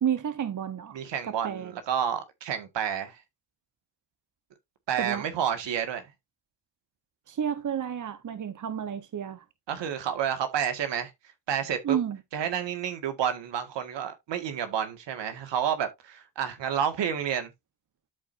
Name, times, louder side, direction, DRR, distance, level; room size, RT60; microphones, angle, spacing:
voice 1, 0.0-1.7 5.0-5.3 7.3-9.4 11.8-12.2, right 9 dB, 45° right, 1.0 m, -31 dB
voice 2, 0.9-3.2 4.9-6.0 9.7-11.1 11.5-12.0 12.3-17.5, right 8 dB, 75° right, 1.8 m, -30 dB
13.0 x 4.4 x 2.6 m
supercardioid pair, 55°, 44 cm